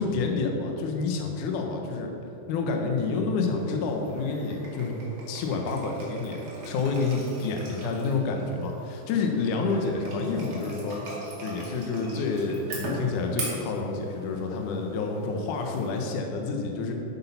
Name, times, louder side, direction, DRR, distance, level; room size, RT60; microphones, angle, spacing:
voice 1, 0.0-2.1 2.5-5.0 5.3-11.0 11.4-16.9, left 4 dB, 75° left, 2 dB, 1.8 m, -28 dB
sound 1, 3.4-16.0, right 1 dB, 35° right, 2.3 m, -40 dB
11.5 x 8.4 x 5.6 m, 2.9 s
omnidirectional pair, 5.2 m